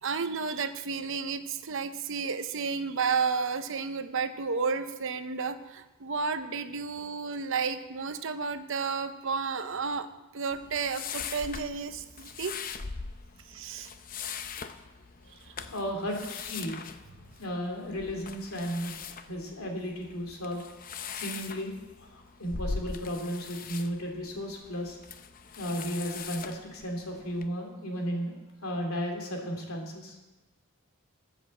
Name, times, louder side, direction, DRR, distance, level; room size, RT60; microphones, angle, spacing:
voice 1, 0.0-10.1 10.3-12.7 13.5-13.9 17.3-17.4, right 5 dB, 60° right, 10 dB, 0.8 m, -32 dB
sound 1, 10.5-27.5, left 5 dB, 40° left, 0.6 m, -41 dB
voice 2, 15.7-16.7 17.4-18.9 19.2-20.6 21.1-21.7 22.0-25.0 25.6-28.3 28.6-30.2, equal, 75° left, 2 dB, 2.8 m, -34 dB
13.0 x 8.0 x 7.5 m, 1.1 s
head